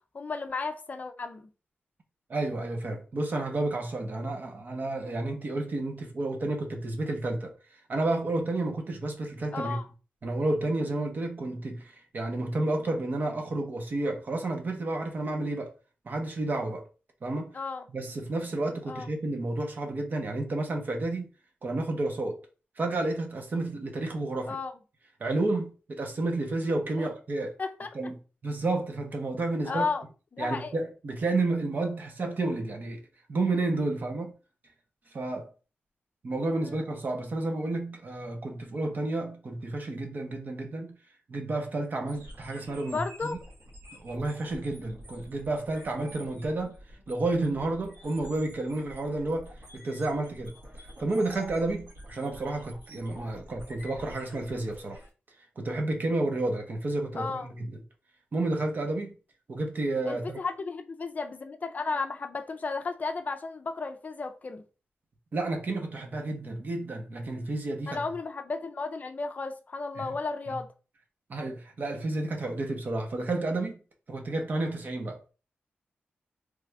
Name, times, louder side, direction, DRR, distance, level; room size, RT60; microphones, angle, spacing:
voice 1, 0.1-1.4 9.5-9.8 17.5-17.8 18.9-19.1 24.5-24.7 27.0-27.1 27.6-28.0 29.7-30.0 30.3-30.8 36.6-36.8 42.9-43.4 57.1-57.5 60.1-64.6 67.9-70.7, left 4 dB, 40° left, 0.4 m, -33 dB
voice 2, 2.3-7.5 7.9-9.8 10.2-15.7 16.0-16.8 17.2-17.5 17.9-21.3 21.6-22.4 22.8-24.6 25.2-27.6 27.9-28.1 28.4-29.9 30.4-33.0 33.3-34.3 35.1-35.5 36.2-41.0 41.3-43.4 43.9-46.8 47.1-50.5 51.0-55.0 55.6-57.8 58.3-59.2 59.5-60.4 65.3-68.0 70.5-70.6 71.3-73.8 74.1-75.3, right 2 dB, 50° right, 0.9 m, -31 dB
sound 1, 42.1-55.1, equal, 80° right, 1.7 m, -48 dB
3.3 x 2.5 x 3.3 m
wide cardioid pair, 115°, 4 cm